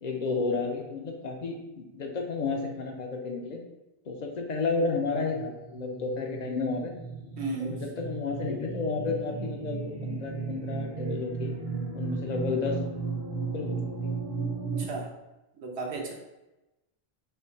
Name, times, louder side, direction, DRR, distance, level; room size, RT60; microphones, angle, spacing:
voice 1, 0.0-1.6 1.9-3.6 4.1-7.0 7.6-11.5 11.9-12.8 13.5-13.8 14.0-14.1, left 4 dB, 50° left, 2 dB, 0.6 m, -31 dB
sound 1, 5.1-14.8, right 4 dB, 30° right, 0.5 m, -35 dB
voice 2, 7.4-7.8 14.8-15.1 15.6-16.1, right 3 dB, 75° right, 0 dB, 1.1 m, -34 dB
3.4 x 3.1 x 4.4 m, 1.0 s
omnidirectional pair, 1.1 m